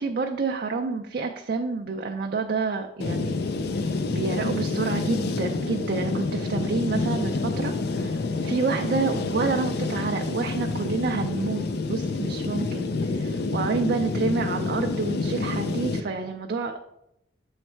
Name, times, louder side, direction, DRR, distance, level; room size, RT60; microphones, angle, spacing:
voice 1, 0.0-3.4 3.7-16.9, right 4 dB, 55° right, 3 dB, 0.4 m, -29 dB
sound 1, 3.0-16.0, left 3 dB, 60° left, 0.4 m, -28 dB
7.2 x 3.2 x 4.4 m, 0.82 s
head